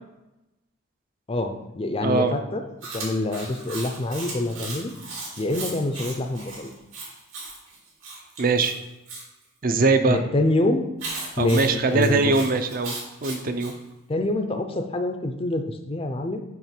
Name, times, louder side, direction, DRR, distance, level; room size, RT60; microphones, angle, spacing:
voice 1, 1.3-2.6 2.9-4.9 5.4-6.7 10.1-10.9 11.4-12.3 14.1-16.4, left 2 dB, 30° left, 6 dB, 0.5 m, -26 dB
voice 2, 2.0-2.3 8.4-8.7 9.6-10.2 11.4-13.0 13.2-13.7, right 3 dB, 45° right, 8 dB, 0.6 m, -21 dB
Chewing mastication, 2.8-9.2 11.0-13.7, right 3 dB, 80° right, 2.6 m, -37 dB
7.2 x 3.1 x 6.0 m, 0.97 s
head